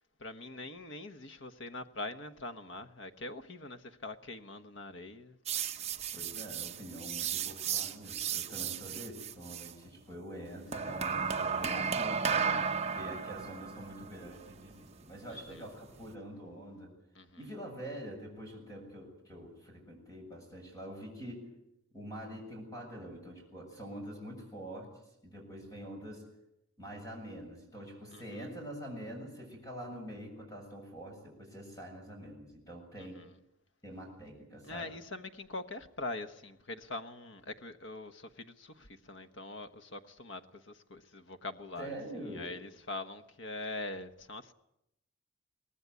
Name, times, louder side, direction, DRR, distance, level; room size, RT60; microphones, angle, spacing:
voice 1, 0.2-5.4 15.3-15.6 17.1-17.4 28.1-28.2 33.0-33.3 34.6-42.0 42.2-44.5, left 2 dB, 55° left, 1.2 m, -43 dB
sound 1, 5.5-9.7 10.7-16.1, right 6 dB, 30° right, 1.0 m, -35 dB
voice 2, 6.1-12.6 12.9-16.9 17.4-21.5 21.9-26.2 26.8-33.2 33.8-34.9 41.8-42.5, equal, 15° left, 7.2 m, -45 dB
23.5 x 19.0 x 9.5 m
head